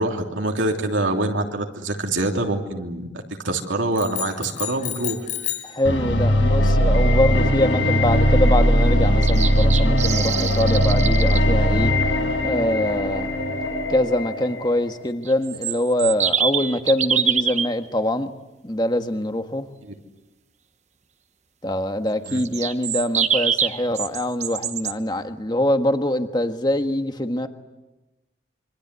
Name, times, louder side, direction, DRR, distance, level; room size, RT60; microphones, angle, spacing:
voice 1, 0.0-5.2 7.1-7.2 7.8-7.9 22.3-22.4, right 2 dB, 75° right, 2 dB, 3.1 m, -25 dB
sound 1, 4.0-5.8, left 13 dB, 40° left, 5.0 m, -31 dB
voice 2, 5.6-11.9 12.3-13.3 13.9-18.3 18.6-19.7 21.6-27.5, left 1 dB, 20° left, 7 dB, 1.4 m, -24 dB
sound 2, 5.9-14.9, equal, 75° left, 5.1 m, -19 dB
sound 3, 9.1-11.4 15.2-17.7 22.2-24.9, right 7 dB, 35° right, 1.0 m, -25 dB
26.5 x 25.0 x 8.3 m, 1.1 s
head